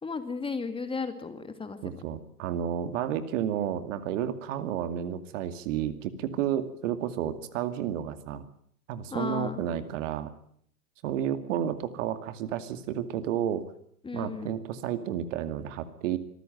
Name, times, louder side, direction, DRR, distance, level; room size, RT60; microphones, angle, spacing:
voice 1, 0.0-1.9 9.1-9.7 14.0-14.6, left 4 dB, 10° left, 9 dB, 2.0 m, -34 dB
voice 2, 1.8-8.4 8.9-10.3 11.0-13.6 14.1-16.2, right 10 dB, 50° right, 10 dB, 2.4 m, -31 dB
25.0 x 14.5 x 9.2 m, 0.66 s
hypercardioid pair, 110°, 46 cm